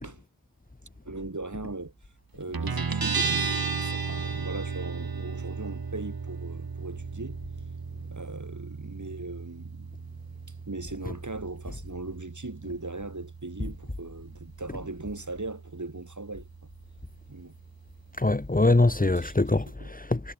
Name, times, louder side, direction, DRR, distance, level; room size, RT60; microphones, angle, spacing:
voice 1, 1.0-1.9 2.3-7.4 8.1-9.9 10.7-16.5 17.3-17.5 19.2-19.9, right 2 dB, 55° right, 6.1 m, -39 dB
Guitar, 2.5-19.7, right 5 dB, 85° right, 1.9 m, -36 dB
voice 2, 18.2-20.3, left 2 dB, 25° left, 1.3 m, -23 dB
wide cardioid pair, 40°, 35 cm